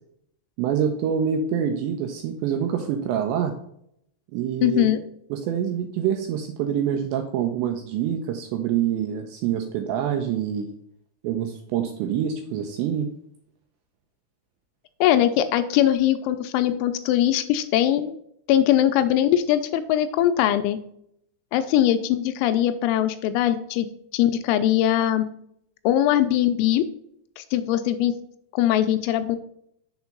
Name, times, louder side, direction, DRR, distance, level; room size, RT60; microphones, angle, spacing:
voice 1, 0.6-3.6 4.3-4.9 5.3-10.7 11.2-13.1, right 8 dB, 85° right, 5 dB, 2.6 m, -26 dB
voice 2, 4.6-5.0 15.0-18.2 18.5-20.8 21.5-23.9 24.1-25.3 25.8-26.8 27.4-28.1 28.5-29.4, left 12 dB, 85° left, 9 dB, 2.8 m, -21 dB
7.0 x 4.4 x 5.2 m, 0.72 s
omnidirectional pair, 5.7 m